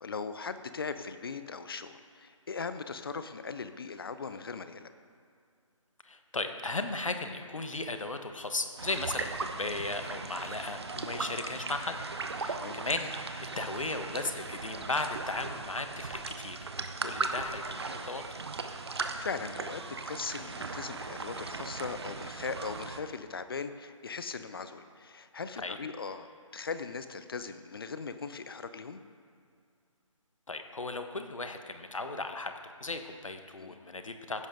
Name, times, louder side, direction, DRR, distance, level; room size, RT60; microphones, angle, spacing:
voice 1, 0.0-4.9 12.5-12.8 17.0-17.2 18.9-29.0 33.6-33.8, left 5 dB, 45° left, 11 dB, 0.7 m, -39 dB
voice 2, 6.0-12.0 12.3-16.6 17.0-18.2 25.6-25.8 30.5-32.5 32.8-34.5, left 3 dB, 75° left, 7 dB, 1.2 m, -36 dB
sound 1, 8.8-23.0, right 4 dB, 50° right, 0.9 m, -38 dB
15.5 x 11.0 x 3.8 m, 2.3 s
figure-of-eight pair, 150°, 17 cm